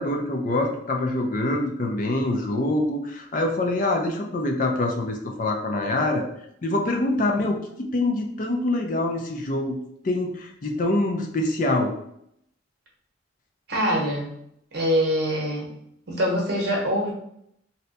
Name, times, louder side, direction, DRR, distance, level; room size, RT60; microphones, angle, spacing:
voice 1, 0.0-6.2 6.6-9.8 10.0-11.9, left 2 dB, 45° left, 2 dB, 0.4 m, -25 dB
voice 2, 13.7-14.3 14.7-15.7 16.1-17.1, equal, 55° right, -2 dB, 0.9 m, -24 dB
2.7 x 2.2 x 3.9 m, 0.73 s
head